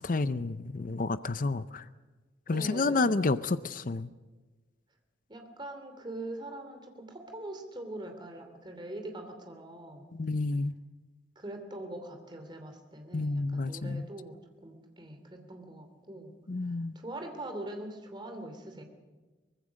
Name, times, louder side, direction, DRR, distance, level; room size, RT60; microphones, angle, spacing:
voice 1, 0.0-1.8 2.5-4.1 10.1-10.7 13.1-14.0 16.5-17.0, left 3 dB, 50° left, 13 dB, 0.6 m, -30 dB
voice 2, 2.5-3.4 5.3-10.1 11.4-16.3 16.9-18.8, right 1 dB, 25° right, 5 dB, 2.9 m, -42 dB
24.0 x 20.0 x 6.4 m, 1.3 s
head